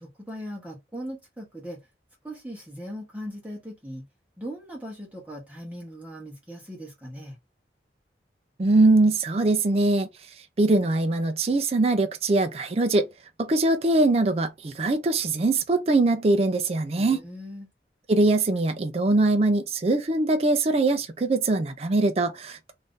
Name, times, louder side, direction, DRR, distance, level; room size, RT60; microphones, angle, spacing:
voice 1, 0.0-1.8 2.2-4.0 4.4-7.4 17.0-17.7, equal, 10° right, 0.9 m, -39 dB
voice 2, 8.6-10.1 10.6-13.1 13.4-17.2 18.1-22.7, right 2 dB, 35° right, 0.4 m, -22 dB
2.6 x 2.5 x 3.6 m
head